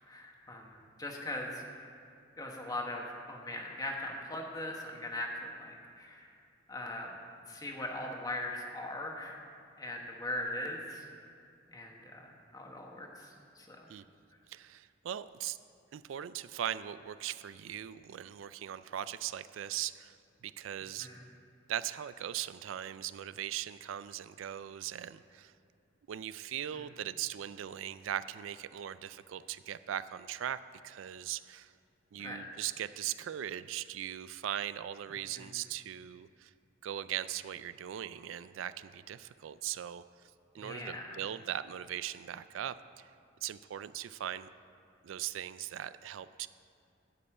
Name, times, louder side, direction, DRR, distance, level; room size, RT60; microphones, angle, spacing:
voice 1, 0.1-1.6 2.4-6.2 6.7-7.1 7.5-9.4 9.8-11.0 11.7-13.2 13.6-13.9 20.8-21.2 26.7-26.8 32.2-32.4 35.3-35.5 40.6-41.2, left 1 dB, 20° left, 0 dB, 1.2 m, -40 dB
voice 2, 14.5-15.6 15.9-20.2 20.4-21.1 21.7-25.5 26.1-31.7 32.1-36.5 36.8-40.0 40.5-43.0 43.4-44.5 45.0-46.5, right 10 dB, 85° right, 14 dB, 0.3 m, -39 dB
12.5 x 5.4 x 8.6 m, 2.5 s
head